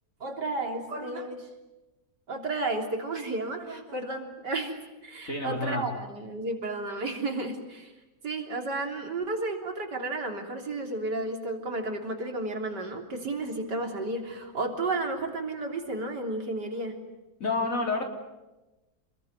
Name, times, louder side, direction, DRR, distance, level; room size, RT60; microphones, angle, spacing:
voice 1, 0.2-1.5 2.3-7.9 8.2-17.0, right 2 dB, 70° right, 3 dB, 4.0 m, -32 dB
voice 2, 5.2-5.9 17.4-18.0, left 3 dB, 45° left, 3 dB, 3.9 m, -29 dB
27.5 x 21.0 x 9.4 m, 1.1 s
omnidirectional pair, 1.9 m